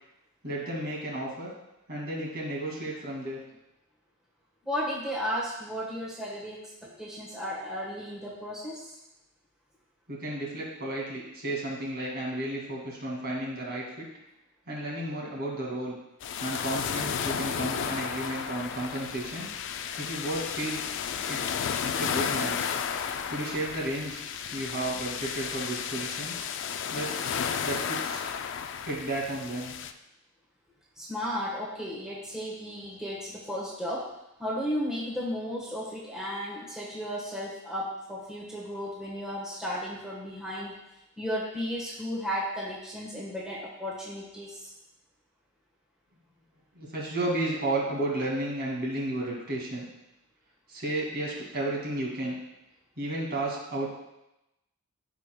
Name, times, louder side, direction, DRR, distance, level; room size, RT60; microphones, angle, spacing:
voice 1, 0.4-1.5 1.9-3.4 10.1-14.1 14.7-16.0 16.4-19.5 20.0-20.8 21.3-21.4 21.8-22.7 23.3-24.2 24.5-26.4 26.9-27.4 27.6-28.2 28.9-29.7 46.7-49.8 50.7-52.3 53.0-53.9, right 1 dB, 45° right, -3 dB, 2.1 m, -33 dB
voice 2, 4.6-9.0 31.0-34.1 34.4-40.8 41.2-44.7, equal, 5° right, -5 dB, 1.2 m, -34 dB
sound 1, 16.2-29.9, left 7 dB, 55° left, 0.4 m, -33 dB
14.5 x 5.0 x 2.2 m, 0.92 s
head